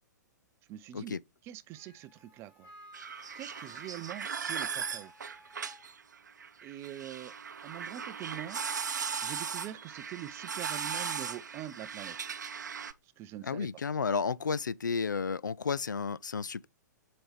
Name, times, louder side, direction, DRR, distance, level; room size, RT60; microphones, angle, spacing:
voice 1, 0.7-1.2 1.4-2.7 3.3-5.1 6.6-7.3 7.6-8.6 9.2-12.3 13.2-13.7, right 13 dB, 25° right, 0.5 m, -44 dB
Wind instrument woodwind instrument, 1.7-5.8, equal, 15° left, 1.9 m, -55 dB
sound 1, 2.9-12.9, right 6 dB, 65° right, 0.6 m, -38 dB
voice 2, 13.4-16.7, left 5 dB, 75° left, 0.4 m, -32 dB
7.7 x 4.3 x 3.1 m
figure-of-eight pair, 110°, 10 cm